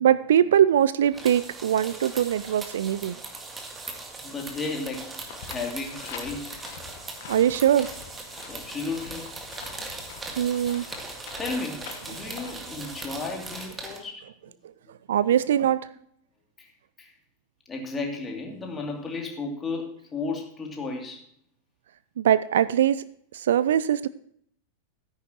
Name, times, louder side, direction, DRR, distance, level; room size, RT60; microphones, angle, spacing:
voice 1, 0.0-3.2 7.3-7.9 10.4-10.9 12.3-12.4 15.1-15.8 22.2-23.0 23.3-24.1, right 10 dB, 60° right, 17 dB, 0.4 m, -22 dB
sound 1, 1.1-14.0, right 3 dB, 15° right, 1.9 m, -40 dB
voice 2, 4.2-5.2 5.5-6.6 8.5-9.3 11.4-14.5 16.6-16.7 17.0-17.1 17.7-21.3, left 3 dB, 20° left, 1 dB, 2.6 m, -34 dB
sound 2, 5.1-13.4, left 8 dB, 50° left, 1.3 m, -45 dB
13.0 x 10.0 x 2.9 m, 0.65 s
figure-of-eight pair, 90°, 0 cm